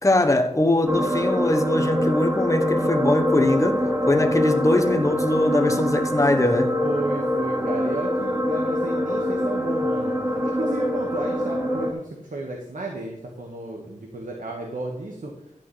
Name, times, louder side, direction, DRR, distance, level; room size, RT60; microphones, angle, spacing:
voice 1, 0.0-6.7, left 1 dB, 25° left, 1.2 m, -21 dB
sound 1, 0.8-11.9, left 1 dB, 20° right, 2.2 m, -24 dB
voice 2, 6.8-10.1 10.4-15.3, right 2 dB, 90° right, 1.4 m, -33 dB
12.0 x 4.1 x 8.0 m
wide cardioid pair, 60°, 13 cm